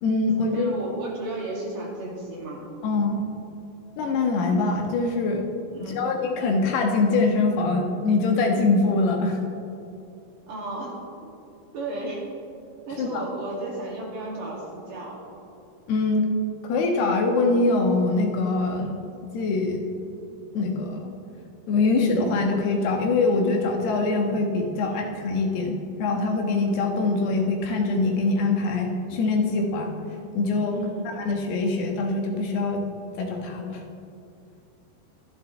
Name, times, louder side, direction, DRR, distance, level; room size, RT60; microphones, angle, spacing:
voice 1, 0.0-0.8 2.8-3.2 4.0-5.5 5.8-9.4 13.0-13.2 15.9-16.3 16.6-18.9 19.3-19.8 20.5-21.1 21.7-29.9 30.3-30.8 31.1-32.8 33.2-33.8, left 3 dB, 90° left, 2 dB, 3.4 m, -23 dB
voice 2, 0.5-2.7 5.7-6.0 10.5-11.3 11.7-12.2 12.9-15.2 18.7-19.0 24.8-25.1 30.7-31.1, right 2 dB, 60° right, -3 dB, 3.8 m, -34 dB
24.0 x 10.0 x 3.3 m, 2.6 s
omnidirectional pair, 4.5 m